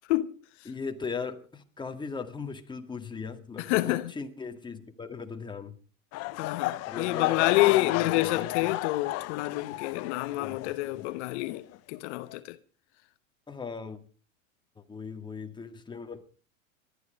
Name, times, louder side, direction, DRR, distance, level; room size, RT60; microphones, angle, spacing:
voice 1, 0.7-5.8 6.8-8.5 10.4-11.1 13.5-14.0 14.8-16.2, left 5 dB, 10° left, 1.9 m, -39 dB
voice 2, 3.6-4.1 6.4-12.6, left 18 dB, 55° left, 1.1 m, -28 dB
sound 1, 6.1-11.1 11.4-11.8 12.3-12.4, left 18 dB, 40° left, 0.8 m, -32 dB
19.5 x 12.0 x 5.2 m
hypercardioid pair, 115°, 40 cm